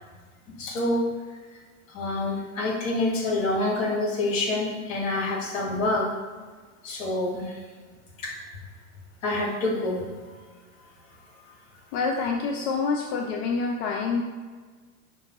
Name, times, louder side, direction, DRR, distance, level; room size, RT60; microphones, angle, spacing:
voice 1, 0.5-1.0 1.9-6.1 6.8-7.6 8.2-8.3 9.2-10.1, left 2 dB, 70° left, -2 dB, 1.2 m, -27 dB
voice 2, 11.9-14.2, left 4 dB, 50° left, 1 dB, 0.5 m, -27 dB
5.0 x 2.2 x 2.9 m, 1.5 s
hypercardioid pair, 100°, 41 cm